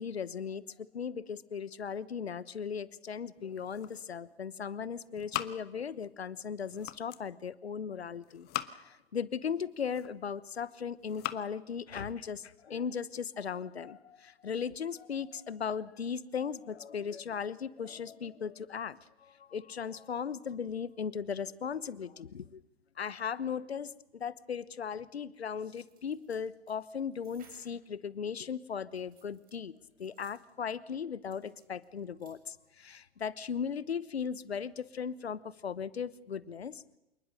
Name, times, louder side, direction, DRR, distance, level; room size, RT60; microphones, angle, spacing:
voice 1, 0.0-8.5 8.7-22.6 23.0-36.8, left 7 dB, 75° left, 19 dB, 1.1 m, -37 dB
sound 1, 3.4-4.4 4.7-6.1 6.5-7.3 8.2-9.1 9.6-10.4 10.9-11.5, left 15 dB, 30° left, 1.2 m, -41 dB
sound 2, 25.7-27.8 28.9-30.5 31.3-32.3 32.7-32.8, right 6 dB, 25° right, 6.2 m, -63 dB
27.5 x 20.0 x 6.6 m, 0.94 s
figure-of-eight pair, 100°, 32 cm